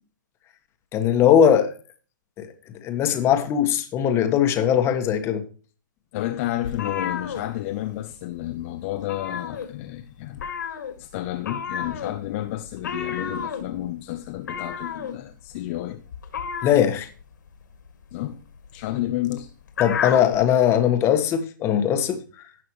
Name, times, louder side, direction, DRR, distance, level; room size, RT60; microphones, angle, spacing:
voice 1, 0.9-1.7 2.4-2.5 2.8-5.4 16.6-17.1 19.8-22.2, left 9 dB, 25° left, 1.5 m, -20 dB
voice 2, 6.1-10.5 11.0-16.0 18.1-18.4 18.7-19.5, left 14 dB, 40° left, 0.8 m, -31 dB
sound 1, 6.6-8.1 8.4-8.6 8.9-10.0 10.3-20.4, left 7 dB, 65° left, 2.2 m, -32 dB
17.5 x 5.9 x 3.2 m
hypercardioid pair, 130°, 11 cm